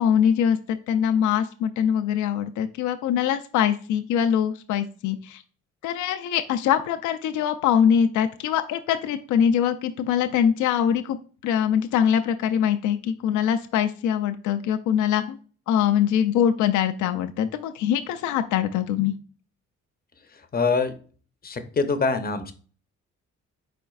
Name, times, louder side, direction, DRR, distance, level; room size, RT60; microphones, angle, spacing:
voice 1, 0.0-5.4 5.8-11.2 11.4-15.4 15.7-19.1, left 9 dB, 75° left, 7 dB, 0.5 m, -23 dB
voice 2, 20.5-20.9 21.4-22.5, left 4 dB, 30° left, 8 dB, 0.7 m, -24 dB
4.4 x 4.3 x 2.3 m, 0.40 s
cardioid pair, 90°, 30 cm